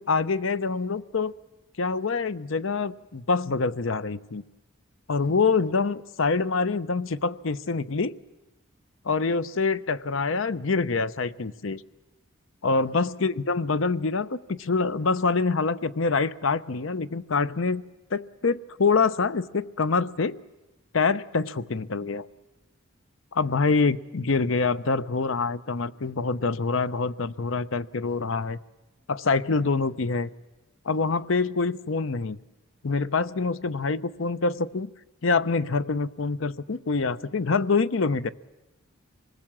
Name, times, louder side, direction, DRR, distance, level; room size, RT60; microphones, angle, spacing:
voice 1, 0.0-1.3 1.8-4.4 5.1-8.1 9.0-11.8 12.6-17.8 18.1-20.4 20.9-22.3 23.3-28.6 29.1-30.3 30.8-32.4 32.8-34.9 35.2-38.3, left 4 dB, 70° left, 15 dB, 0.7 m, -25 dB
25.5 x 20.0 x 7.4 m, 1.0 s
head